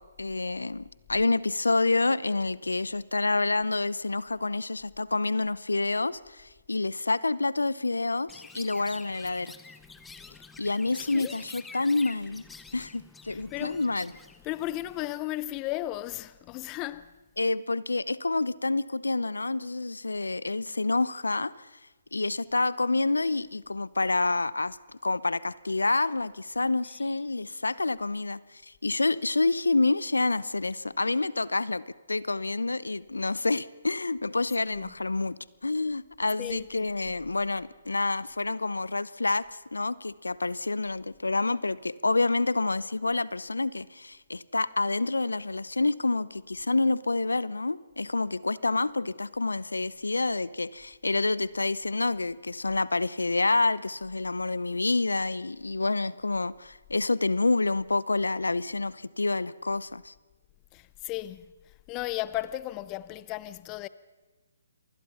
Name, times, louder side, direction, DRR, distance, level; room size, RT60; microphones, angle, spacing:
voice 1, 0.0-9.5 10.6-12.4 12.7-14.1 17.4-21.7 22.1-24.8 25.0-60.1, left 3 dB, 80° left, 0.7 m, -28 dB
Chirp tweet, 8.3-15.1, left 4 dB, 5° left, 1.0 m, -48 dB
voice 2, 11.0-11.4 13.3-13.8 14.4-17.1 26.9-27.3 34.7-35.0 36.4-37.1 60.7-63.9, left 16 dB, 25° left, 0.6 m, -36 dB
27.5 x 20.5 x 5.7 m
figure-of-eight pair, 140°, 0 cm